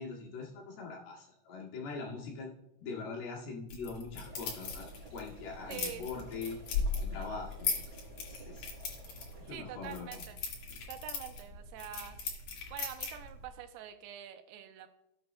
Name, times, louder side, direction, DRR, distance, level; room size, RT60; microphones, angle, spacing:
voice 1, 0.0-2.5 2.8-6.6 7.0-7.7 8.3-8.7 9.4-10.2, left 4 dB, 75° left, -3 dB, 3.8 m, -42 dB
sound 1, 3.7-13.5, left 5 dB, 55° left, 2.9 m, -39 dB
sound 2, 4.2-9.5, right 3 dB, 35° right, 4.6 m, -55 dB
voice 2, 5.7-6.1 9.5-10.4 10.9-12.2 12.7-14.9, right 10 dB, 80° right, 7 dB, 2.7 m, -45 dB
18.0 x 8.0 x 2.2 m, 0.85 s
omnidirectional pair, 4.6 m